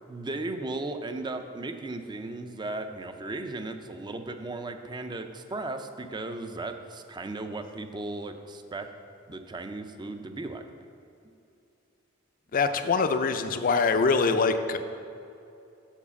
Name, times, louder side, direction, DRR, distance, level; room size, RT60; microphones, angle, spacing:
voice 1, 0.1-8.9 9.3-10.6, right 2 dB, 20° right, 7 dB, 0.4 m, -36 dB
voice 2, 12.5-14.8, left 4 dB, 45° left, 9 dB, 0.5 m, -24 dB
7.3 x 4.9 x 6.9 m, 2.6 s
head